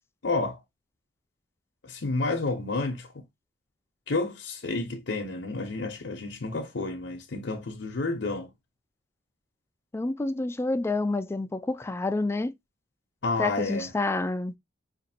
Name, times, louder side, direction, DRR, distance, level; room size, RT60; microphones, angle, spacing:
voice 1, 0.2-0.6 1.8-3.1 4.1-8.5 13.2-13.9, left 3 dB, 75° left, 0.7 m, -30 dB
voice 2, 9.9-12.5 13.4-14.5, left 2 dB, 15° left, 0.3 m, -28 dB
5.1 x 2.6 x 2.6 m
head